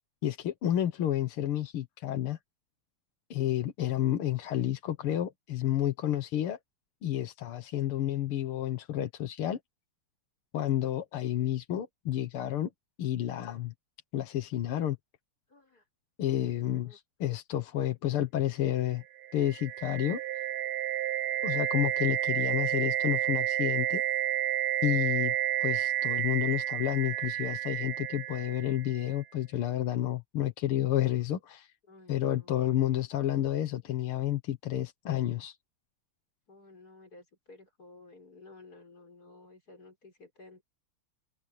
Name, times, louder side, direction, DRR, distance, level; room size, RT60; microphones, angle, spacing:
voice 1, 0.2-2.4 3.3-6.6 7.0-9.6 10.5-12.7 13.0-13.7 14.1-15.0 16.2-19.0 19.3-20.2 21.4-24.0 24.8-25.3 25.6-31.7 32.1-35.6, left 12 dB, 80° left, 2.2 m, -30 dB
voice 2, 15.5-15.8 16.6-17.0 31.9-32.7 36.5-40.6, left 3 dB, 45° left, 6.7 m, -54 dB
sound 1, 19.2-29.1, right 12 dB, 70° right, 1.8 m, -31 dB
omnidirectional pair, 2.4 m